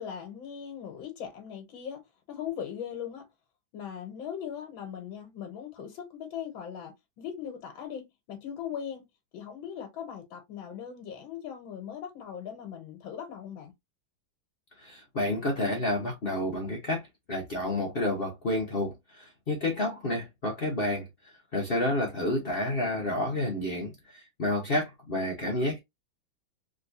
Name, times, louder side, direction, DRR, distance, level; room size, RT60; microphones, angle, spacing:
voice 1, 0.0-3.3 3.7-9.0 9.3-13.7, left 8 dB, 75° left, 1.7 m, -39 dB
voice 2, 14.8-21.1 21.5-25.8, left 1 dB, 50° left, 0.6 m, -30 dB
3.6 x 2.9 x 2.6 m
omnidirectional pair, 2.2 m